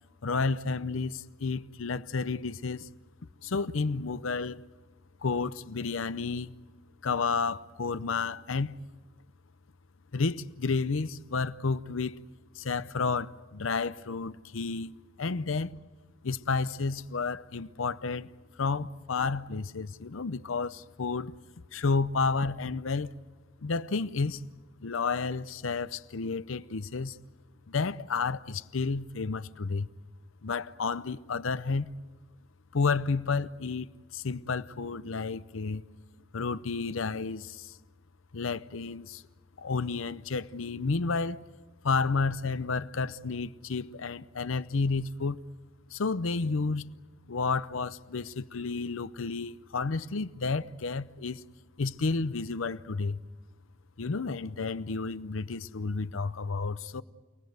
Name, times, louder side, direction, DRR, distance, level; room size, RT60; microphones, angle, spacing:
voice 1, 0.2-2.9 3.4-4.6 5.2-6.5 7.0-8.8 10.1-12.2 12.5-15.8 16.2-18.3 18.6-21.3 21.7-23.1 23.6-24.5 24.8-27.2 27.7-29.9 30.4-31.9 32.7-33.9 34.1-35.8 36.3-37.8 38.3-39.2 39.6-41.4 41.8-45.4 45.9-47.0 47.3-51.4 51.8-53.2 54.0-57.0, left 4 dB, 85° left, 0.7 m, -31 dB
28.5 x 18.5 x 8.0 m
head